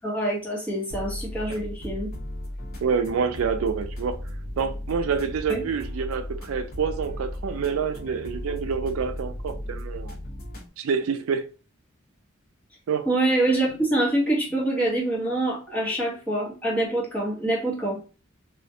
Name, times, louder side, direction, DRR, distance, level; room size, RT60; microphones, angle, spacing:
voice 1, 0.0-2.1 5.5-5.6 13.1-18.0, right 1 dB, 5° left, 0.9 m, -25 dB
sound 1, 0.9-10.7, left 1 dB, 45° left, 0.9 m, -36 dB
voice 2, 2.8-4.2 4.6-10.2 10.8-11.5 12.9-13.1, right 6 dB, 85° right, 0.3 m, -27 dB
2.4 x 2.1 x 2.6 m
head